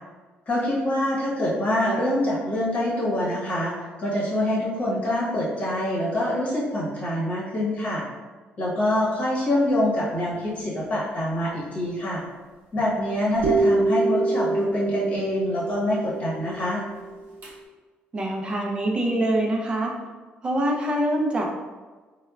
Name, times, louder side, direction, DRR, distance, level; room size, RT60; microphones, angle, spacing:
voice 1, 0.5-8.0 8.6-12.2 12.7-16.8, left 1 dB, 35° left, -6 dB, 1.0 m, -25 dB
sound 1, 13.4-17.5, right 2 dB, 55° right, 0.8 m, -25 dB
voice 2, 18.1-19.9 20.4-21.4, right 1 dB, 25° right, 0 dB, 0.5 m, -24 dB
4.3 x 2.2 x 2.3 m, 1.3 s
cardioid pair, 150°, 4 cm